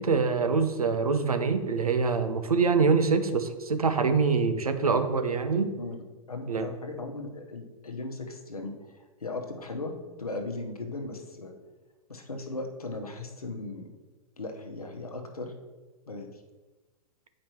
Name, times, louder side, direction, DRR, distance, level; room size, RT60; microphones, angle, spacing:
voice 1, 0.0-5.7 6.5-6.7, right 5 dB, 85° right, 9 dB, 0.7 m, -25 dB
voice 2, 6.3-9.9 10.2-11.5 12.1-13.9 14.4-15.5 16.1-16.4, left 2 dB, 90° left, 4 dB, 0.9 m, -37 dB
8.7 x 5.1 x 2.9 m, 1.2 s
figure-of-eight pair, 100°, 18 cm